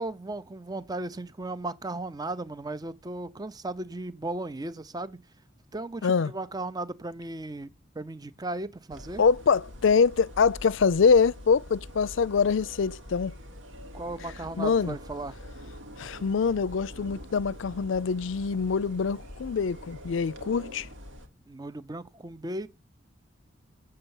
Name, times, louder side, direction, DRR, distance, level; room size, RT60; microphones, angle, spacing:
voice 1, 0.0-5.2 5.7-7.7 7.9-9.2 13.9-15.4 21.5-22.7, right 2 dB, 20° right, 0.6 m, -36 dB
sound 1, 8.9-21.3, equal, 75° right, 1.9 m, -45 dB
voice 2, 9.2-13.4 14.6-15.0 16.0-20.9, left 5 dB, 75° left, 0.5 m, -24 dB
7.8 x 6.8 x 7.0 m
head